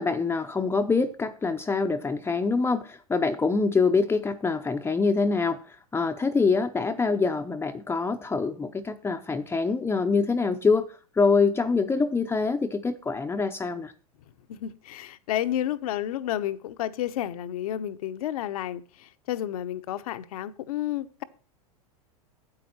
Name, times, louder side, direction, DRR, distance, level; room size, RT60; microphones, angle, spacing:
voice 1, 0.0-13.9, left 4 dB, 10° left, 0.7 m, -25 dB
voice 2, 14.5-21.2, left 12 dB, 65° left, 0.9 m, -31 dB
9.0 x 8.5 x 4.3 m
hypercardioid pair, 100°, 20 cm